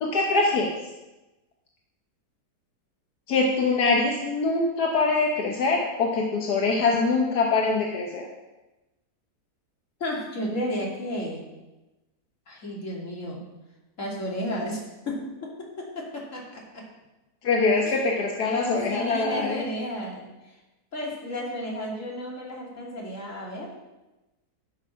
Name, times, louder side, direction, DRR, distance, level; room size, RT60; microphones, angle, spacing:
voice 1, 0.0-0.7 3.3-8.3 17.4-19.6, left 3 dB, 80° left, 0 dB, 1.7 m, -23 dB
voice 2, 10.0-11.4 12.5-13.4 14.0-14.8 15.1-15.5 15.8-16.8 17.8-18.0 18.5-20.2 20.9-23.7, equal, 50° left, -3 dB, 3.1 m, -33 dB
13.0 x 6.3 x 5.8 m, 1.0 s
omnidirectional pair, 1.7 m